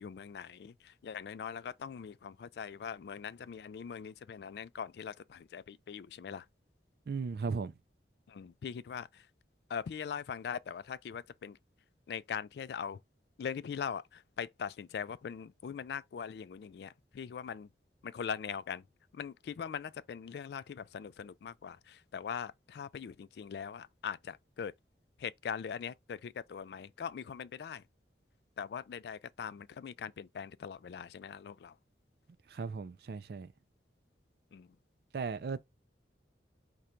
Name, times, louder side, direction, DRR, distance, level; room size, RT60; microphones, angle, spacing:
voice 1, 0.0-6.5 8.3-9.3 9.7-11.6 12.1-13.0 13.4-17.7 18.0-18.8 19.1-24.7 25.2-27.8 28.6-31.7 34.5-34.7, left 7 dB, 65° left, 0.3 m, -41 dB
voice 2, 7.1-7.7 32.5-33.5 35.1-35.6, right 5 dB, 55° right, 0.3 m, -36 dB
5.0 x 2.2 x 4.3 m
head